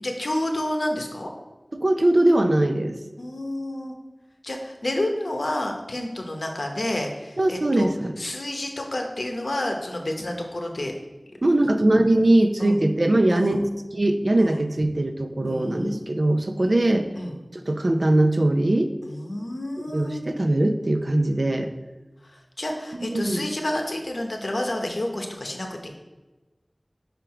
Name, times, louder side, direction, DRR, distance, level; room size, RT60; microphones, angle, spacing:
voice 1, 0.0-1.3 3.2-3.9 4.4-7.9 8.2-10.9 12.6-12.8 13.3-13.6 14.4-14.6 15.4-16.0 16.6-16.8 17.1-17.3 19.0-20.2 22.2-25.9, left 1 dB, 85° left, 2 dB, 0.8 m, -30 dB
voice 2, 1.8-3.0 7.4-8.2 11.4-13.6 13.9-17.1 17.5-18.9 19.9-21.7 23.0-23.4, right 1 dB, 65° right, 7 dB, 0.5 m, -21 dB
5.1 x 4.5 x 4.8 m, 1.1 s
wide cardioid pair, 45°, 0 cm